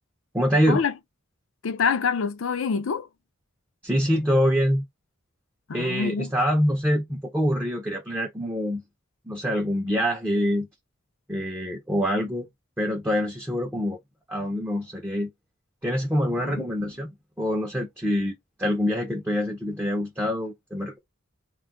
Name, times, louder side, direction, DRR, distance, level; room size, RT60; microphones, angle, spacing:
voice 1, 0.3-0.8 3.8-4.8 5.7-8.8 9.3-10.7 11.3-12.5 12.8-14.0 14.3-15.3 15.8-17.1 17.4-21.0, equal, 10° right, 0.5 m, -25 dB
voice 2, 1.6-3.1 5.7-6.3 16.3-16.7, left 5 dB, 70° left, 0.5 m, -26 dB
2.3 x 2.1 x 3.6 m
head